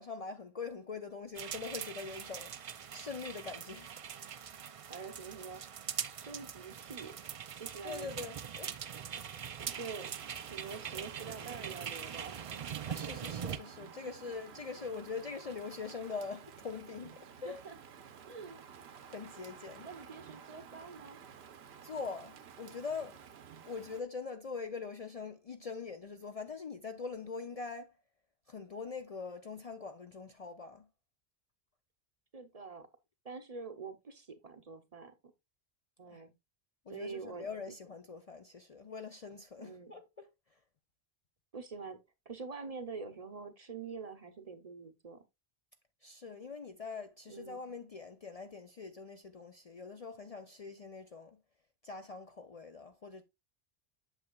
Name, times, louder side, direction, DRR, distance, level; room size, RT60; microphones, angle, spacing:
voice 1, 0.0-3.9 7.8-8.9 12.8-17.6 19.1-19.9 21.8-23.2 23.6-28.0 28.5-30.9 36.1-36.2 36.9-40.3 46.0-51.4 51.8-53.2, left 4 dB, 45° left, 0.5 m, -43 dB
sound 1, 1.3-13.6, right 8 dB, 55° right, 0.3 m, -42 dB
voice 2, 4.9-5.6 6.2-7.1 7.6-8.1 9.6-10.1 10.5-12.4 13.0-13.1 17.4-17.7 18.3-19.0 19.8-21.2 32.3-32.9 33.2-35.1 36.0-36.3 36.9-37.5 39.6-39.9 41.5-42.0 42.3-45.2 47.3-47.6, right 4 dB, 40° right, 0.7 m, -45 dB
Rain, 9.6-24.0, right 7 dB, 75° right, 1.0 m, -53 dB
8.1 x 6.9 x 2.2 m
omnidirectional pair, 1.1 m